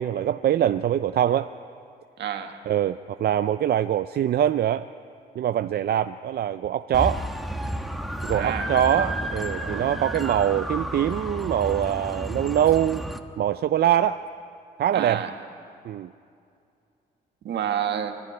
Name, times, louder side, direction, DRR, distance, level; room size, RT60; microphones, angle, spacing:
voice 1, 0.0-1.5 2.7-4.9 5.4-7.3 8.2-13.0 13.4-14.2 14.8-15.2 15.8-16.1, right 10 dB, 70° right, 11 dB, 0.5 m, -23 dB
voice 2, 2.2-2.6 8.3-9.2 9.5-10.0 14.9-15.3 17.4-18.1, right 9 dB, 85° right, 6 dB, 1.5 m, -30 dB
sound 1, 6.9-13.2, equal, ahead, 1.3 m, -31 dB
25.5 x 11.5 x 10.0 m, 2.5 s
cardioid pair, 95°, 17 cm